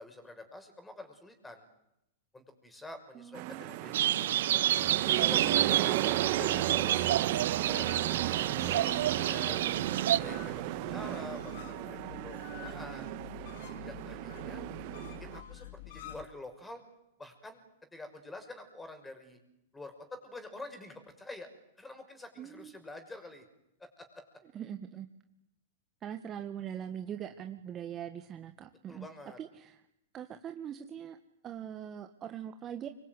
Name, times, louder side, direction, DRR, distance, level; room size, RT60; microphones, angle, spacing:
voice 1, 0.0-1.7 2.3-4.7 5.2-7.1 7.6-9.6 10.2-13.1 13.8-14.7 15.2-16.8 17.2-17.6 17.9-19.4 19.7-21.5 21.8-23.4 23.8-24.2 28.9-29.4, left 2 dB, 10° left, 8 dB, 6.2 m, -47 dB
voice 2, 3.1-3.7 22.4-22.7 24.5-25.1 26.0-29.1 29.4-29.8 30.1-31.2 31.4-32.9, right 9 dB, 30° right, 7 dB, 1.8 m, -42 dB
sound 1, 3.3-15.4, right 15 dB, 50° right, 2.0 m, -35 dB
sound 2, 3.9-10.2, right 12 dB, 70° right, 1.1 m, -29 dB
sound 3, 6.1-16.2, left 9 dB, 65° left, 3.6 m, -49 dB
25.5 x 23.0 x 9.5 m, 0.85 s
hypercardioid pair, 115°, 0 cm